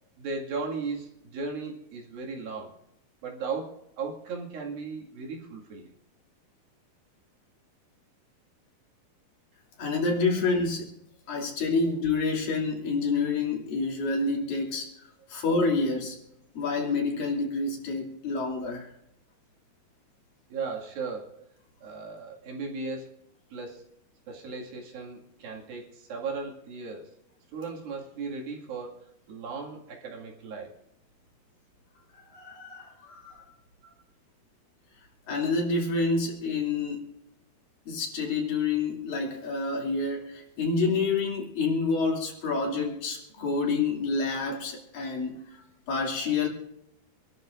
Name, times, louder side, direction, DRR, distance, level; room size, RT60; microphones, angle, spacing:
voice 1, 0.2-2.8 3.2-5.9 20.5-21.5 21.8-23.2 23.5-23.9 24.3-27.1 27.5-30.7 33.8-33.9, right 4 dB, 70° right, -1 dB, 3.9 m, -36 dB
voice 2, 9.8-10.9 11.3-14.9 15.3-16.2 16.5-18.9 32.1-33.5 35.3-37.1 37.9-46.5, left 3 dB, 65° left, -1 dB, 4.3 m, -28 dB
26.5 x 12.5 x 2.6 m, 0.81 s
omnidirectional pair, 4.3 m